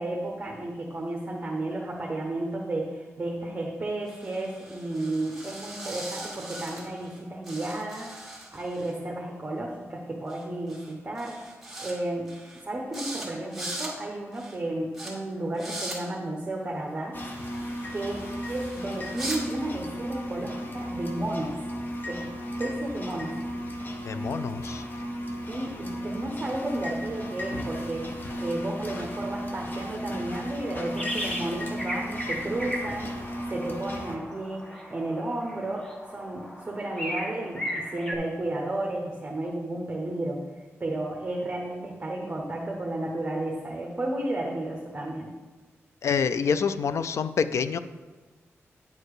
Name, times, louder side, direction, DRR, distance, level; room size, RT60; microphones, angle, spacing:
voice 1, 0.0-8.1 8.5-11.4 11.8-12.3 12.6-17.2 17.9-18.2 18.5-21.5 22.1-22.2 22.6-23.3 25.5-40.4 40.8-45.3, right 1 dB, 25° right, -1 dB, 1.0 m, -33 dB
sound 1, 4.1-7.2 7.4-8.9 10.3-10.4 10.7-10.9 11.2-11.9 12.3-12.6 12.9-13.3 13.5-13.9 14.3-14.6 14.9-15.1 15.5-16.0 17.2-19.4, right 1 dB, 5° right, 2.0 m, -40 dB
sound 2, 17.1-34.2, equal, 40° left, 0.9 m, -35 dB
voice 2, 24.0-24.8 46.0-47.8, left 6 dB, 70° left, 12 dB, 0.4 m, -27 dB
sound 3, 31.0-31.5 31.8-38.1, equal, 15° left, 1.1 m, -36 dB
9.5 x 4.5 x 4.9 m, 1.3 s
wide cardioid pair, 115°, 5 cm